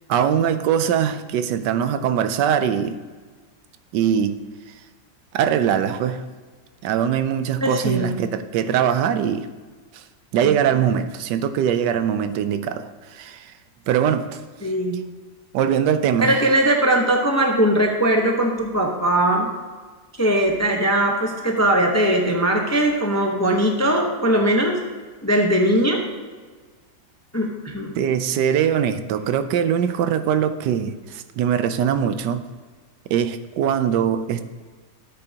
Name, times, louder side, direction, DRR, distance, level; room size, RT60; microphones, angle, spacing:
voice 1, 0.1-3.0 3.9-4.4 5.3-6.2 6.8-9.5 9.9-10.0 10.3-13.5 13.9-14.4 15.5-16.6 27.9-32.4 33.1-34.5, right 8 dB, 85° right, 10 dB, 1.3 m, -22 dB
voice 2, 7.6-8.3 10.4-10.5 14.6-15.0 16.2-19.5 20.2-24.8 25.2-26.0 27.3-28.0, right 1 dB, 15° left, 1 dB, 0.6 m, -20 dB
13.5 x 7.8 x 2.9 m, 1.4 s
omnidirectional pair, 1.8 m